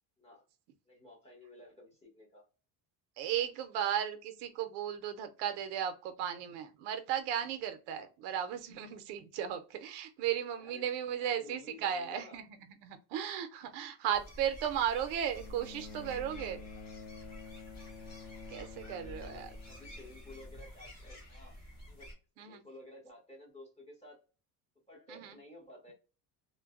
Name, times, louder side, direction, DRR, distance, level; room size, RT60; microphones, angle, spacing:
voice 1, 0.8-2.4 10.5-12.4 18.9-21.6 21.9-22.1 22.4-24.2 24.9-25.9, left 1 dB, 15° left, 1.2 m, -53 dB
voice 2, 3.2-12.4 12.8-16.6 18.5-19.5 22.4-22.6 25.1-25.4, right 9 dB, 75° right, 0.6 m, -35 dB
sound 1, 14.1-22.1, left 1 dB, 40° left, 1.6 m, -50 dB
Bowed string instrument, 15.3-20.8 21.9-22.0, left 5 dB, 65° left, 0.6 m, -50 dB
3.1 x 2.2 x 2.3 m
cardioid pair, 155°, 41 cm